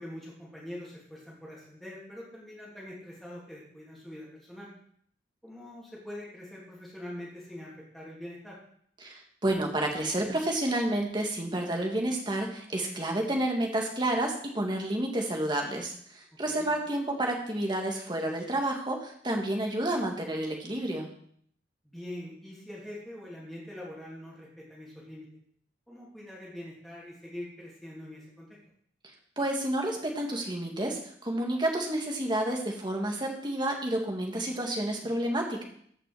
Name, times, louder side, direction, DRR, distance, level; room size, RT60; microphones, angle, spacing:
voice 1, 0.0-4.7 5.4-8.6 16.5-16.7 21.8-25.3 25.9-28.5, left 1 dB, ahead, -6 dB, 2.9 m, -44 dB
voice 2, 9.0-21.1 29.4-35.6, right 1 dB, 25° right, 1 dB, 1.7 m, -30 dB
13.5 x 5.9 x 4.8 m, 0.64 s
head